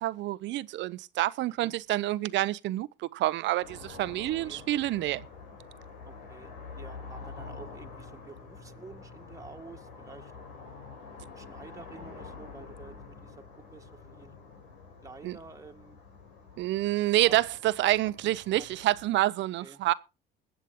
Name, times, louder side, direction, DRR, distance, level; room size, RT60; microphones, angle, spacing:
voice 1, 0.0-5.2 15.2-15.4 16.6-19.9, right 16 dB, 65° right, 0.7 m, -28 dB
sound 1, 3.6-19.1, left 4 dB, 85° left, 4.2 m, -47 dB
voice 2, 4.2-4.6 6.0-10.3 11.4-13.4 13.7-14.4 15.0-16.0 17.1-17.4 18.2-18.3 18.6-18.7 19.6-19.8, right 3 dB, 15° right, 1.9 m, -50 dB
21.0 x 8.2 x 3.7 m
supercardioid pair, 80°, 20 cm